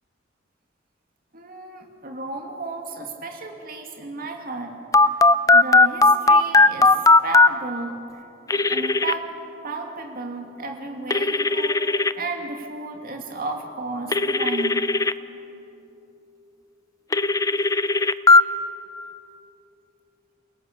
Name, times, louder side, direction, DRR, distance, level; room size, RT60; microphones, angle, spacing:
voice 1, 1.3-5.1 5.5-7.0 7.2-8.2 8.7-9.4 9.6-14.9, right 3 dB, 50° right, 2 dB, 2.6 m, -33 dB
Telephone, 4.9-7.5 8.5-9.1 11.1-12.1 14.1-15.1 17.1-18.4, left 3 dB, 20° left, 0.5 m, -16 dB
29.0 x 17.5 x 6.8 m, 2.9 s
head